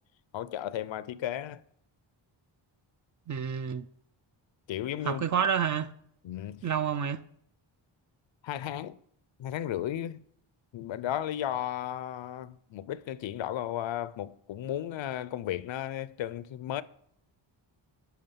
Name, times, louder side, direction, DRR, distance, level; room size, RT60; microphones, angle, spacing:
voice 1, 0.3-1.6 4.7-5.2 6.2-6.7 8.4-9.0 9.4-10.2 10.7-16.8, left 11 dB, 65° left, 0.5 m, -34 dB
voice 2, 3.3-3.9 5.0-5.9 6.6-7.2, right 7 dB, 40° right, 0.4 m, -29 dB
10.5 x 5.1 x 5.6 m
cardioid pair, 85°, 49 cm